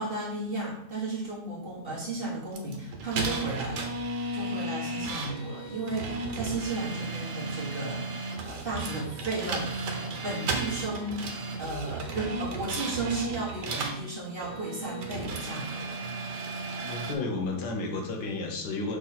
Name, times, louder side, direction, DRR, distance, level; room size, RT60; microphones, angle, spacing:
voice 1, 0.0-3.9 4.3-9.9 10.2-16.0, right 2 dB, 35° right, -5 dB, 1.7 m, -34 dB
sound 1, 2.5-14.0 14.4-17.1, right 2 dB, 85° right, 1.6 m, -34 dB
voice 2, 16.8-19.0, left 3 dB, 80° left, 2 dB, 1.7 m, -32 dB
6.3 x 4.0 x 4.3 m, 0.76 s
omnidirectional pair, 1.8 m